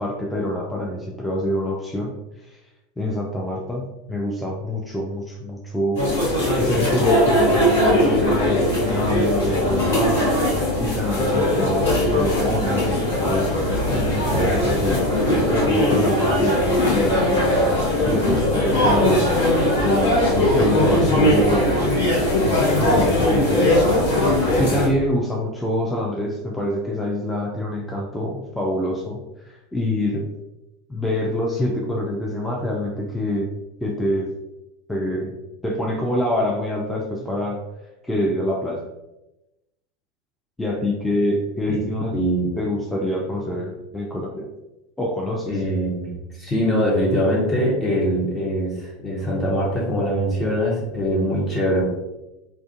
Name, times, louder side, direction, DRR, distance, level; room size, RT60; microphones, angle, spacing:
voice 1, 0.0-2.1 2.4-2.6 3.0-6.0 6.5-10.3 10.8-13.6 13.9-15.1 15.4-17.4 18.0-19.3 19.8-22.1 22.8-23.7 24.6-30.3 30.9-33.5 33.8-34.3 34.9-35.4 35.6-37.6 38.0-38.8 40.6-42.2 42.6-44.5 45.0-45.6, left 1 dB, 10° left, -2 dB, 0.4 m, -25 dB
sound 1, 6.0-24.9, left 1 dB, 75° left, 0.9 m, -19 dB
voice 2, 42.1-42.5 45.5-51.8, equal, 25° left, -4 dB, 0.8 m, -22 dB
2.4 x 2.4 x 2.5 m, 0.97 s
figure-of-eight pair, 80°, 0 cm